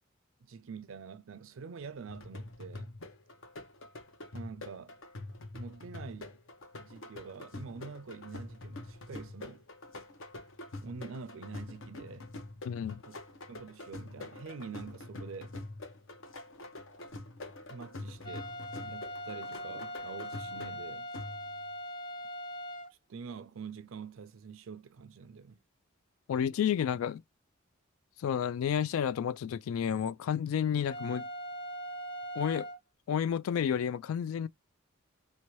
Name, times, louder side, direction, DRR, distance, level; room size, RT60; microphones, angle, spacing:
voice 1, 0.5-2.9 4.3-5.0 5.5-6.4 6.8-9.6 10.8-12.3 13.1-13.2 13.5-15.5 17.7-18.5 18.8-21.1 23.1-25.6, right 5 dB, 70° right, 0.4 m, -46 dB
sound 1, 2.1-21.7, left 2 dB, 65° left, 0.8 m, -45 dB
voice 2, 12.6-13.0 26.3-27.2 28.2-31.3 32.4-32.7 33.1-34.5, left 8 dB, 80° left, 0.3 m, -31 dB
sound 2, 18.2-22.9 30.8-32.8, equal, 25° left, 0.7 m, -41 dB
2.8 x 2.2 x 3.0 m
head